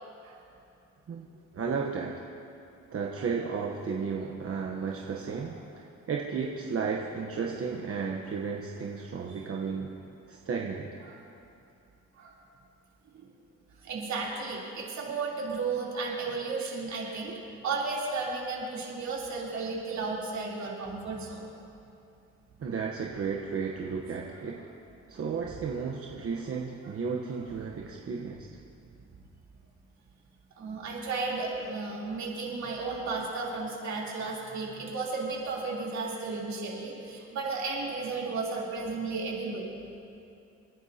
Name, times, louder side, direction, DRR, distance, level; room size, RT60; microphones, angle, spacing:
voice 1, 1.5-2.3 2.9-9.9 10.3-10.9 22.6-24.7 25.1-28.5, right 5 dB, 50° right, 0 dB, 1.1 m, -33 dB
voice 2, 13.8-21.5 30.6-39.7, right 4 dB, 65° right, -4 dB, 3.4 m, -34 dB
28.0 x 10.5 x 2.9 m, 2.7 s
cardioid pair, 90°, 30 cm